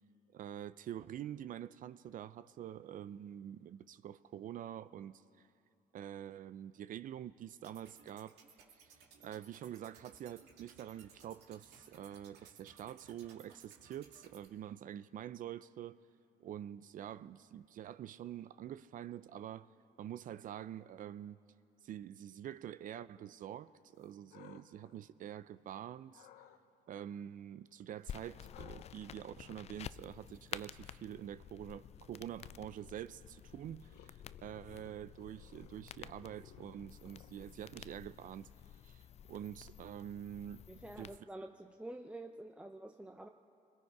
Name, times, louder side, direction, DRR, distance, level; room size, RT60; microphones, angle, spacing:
voice 1, 0.3-5.5 5.9-8.4 8.8-16.0 16.4-19.7 20.0-21.4 21.8-26.3 26.9-38.5 38.8-40.6 41.0-41.2, right 10 dB, 55° right, 0.5 m, -46 dB
sound 1, 7.5-14.5, right 6 dB, 80° right, 2.2 m, -61 dB
sound 2, 23.9-25.7 26.1-26.6 28.5-37.9, left 10 dB, 80° left, 1.0 m, -62 dB
sound 3, 28.1-41.2, left 9 dB, 40° left, 0.4 m, -51 dB
voice 2, 40.7-43.3, right 1 dB, 5° right, 0.6 m, -48 dB
27.5 x 21.0 x 4.7 m
cardioid pair, 110°, 17 cm